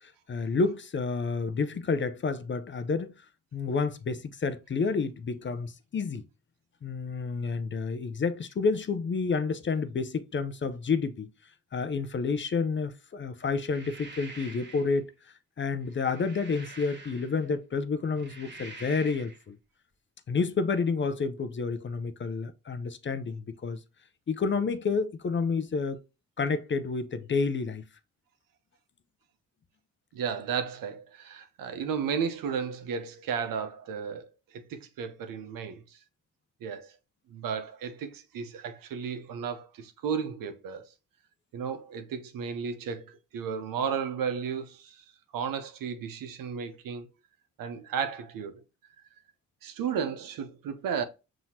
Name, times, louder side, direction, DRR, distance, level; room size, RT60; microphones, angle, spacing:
voice 1, 0.0-3.1 3.5-6.2 6.8-11.3 11.7-15.1 15.6-19.6 20.3-23.8 24.3-26.0 26.4-27.8, left 4 dB, 35° left, 0.6 m, -29 dB
sound 1, 13.5-15.0 15.8-17.5 18.0-19.4, right 2 dB, 30° right, 1.1 m, -47 dB
voice 2, 30.1-36.0 36.6-36.9 37.3-40.9 41.5-45.0 45.3-47.1 47.6-48.6 49.6-51.0, right 6 dB, 70° right, 0.8 m, -34 dB
5.6 x 2.8 x 2.7 m
supercardioid pair, 50°, 35 cm